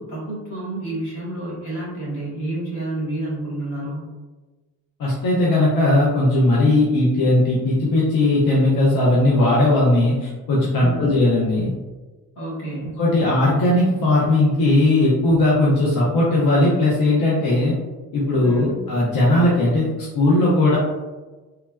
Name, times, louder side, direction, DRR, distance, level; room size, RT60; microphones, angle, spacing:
voice 1, 0.0-4.1 10.8-11.1 12.4-13.0 18.4-18.8, right 1 dB, 90° left, -7 dB, 1.2 m, -29 dB
voice 2, 5.0-11.7 13.0-17.7 18.1-20.8, left 2 dB, 70° left, -6 dB, 0.7 m, -18 dB
3.2 x 2.2 x 2.2 m, 1.2 s
supercardioid pair, 50°, 37 cm